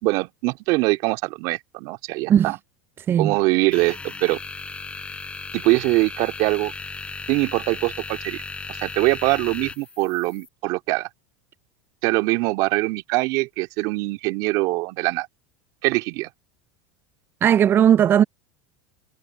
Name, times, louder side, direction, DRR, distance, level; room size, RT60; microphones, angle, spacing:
voice 1, 0.0-2.6 3.2-4.4 5.5-6.7 7.3-8.4 8.8-11.1 12.0-15.3 15.8-16.3, right 23 dB, 60° right, 2.5 m, -23 dB
sound 1, 3.7-10.5, left 4 dB, 15° left, 6.1 m, -36 dB
voice 2, 17.4-18.2, right 9 dB, 30° right, 0.5 m, -16 dB
hypercardioid pair, 105°, 7 cm